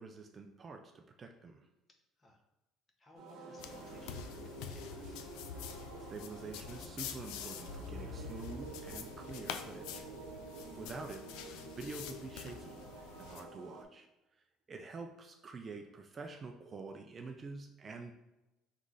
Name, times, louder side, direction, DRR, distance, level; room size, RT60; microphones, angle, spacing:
voice 1, 0.0-1.7 6.1-10.2 10.8-14.1 14.7-18.1, right 4 dB, 25° right, 4 dB, 0.3 m, -47 dB
voice 2, 3.0-5.1 14.7-14.8, left 1 dB, 20° left, 1 dB, 0.7 m, -61 dB
sound 1, 3.1-13.8, right 3 dB, 70° right, 0.9 m, -49 dB
sound 2, 3.6-13.4, left 7 dB, 85° left, 0.3 m, -46 dB
3.9 x 3.1 x 3.7 m, 1.0 s
cardioid pair, 140°, 0 cm